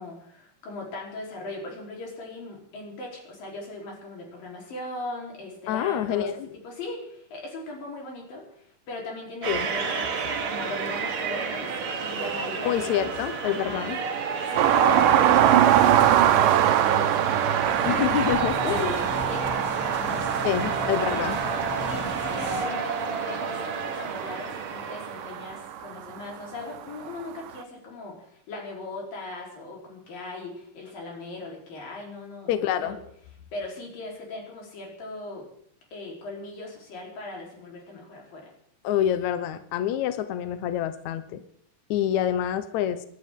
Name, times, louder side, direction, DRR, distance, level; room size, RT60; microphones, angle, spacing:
voice 1, 0.0-6.3 6.6-13.1 13.4-13.9 14.4-18.1 18.6-21.2 21.9-33.0 33.5-35.5 35.9-38.5, left 2 dB, 90° left, -1 dB, 5.6 m, -39 dB
voice 2, 5.7-6.4 9.5-9.7 12.6-14.0 17.8-18.9 20.4-21.4 32.5-33.0 38.8-41.4 41.9-43.0, left 10 dB, 70° left, 11 dB, 1.9 m, -27 dB
sound 1, 9.4-25.7, right 5 dB, 50° right, 2.0 m, -30 dB
sound 2, 14.6-26.0 27.5-27.6, right 11 dB, 80° right, 2.4 m, -23 dB
sound 3, 17.6-22.7, equal, 5° left, 2.3 m, -36 dB
28.0 x 11.0 x 3.7 m, 0.65 s
omnidirectional pair, 3.9 m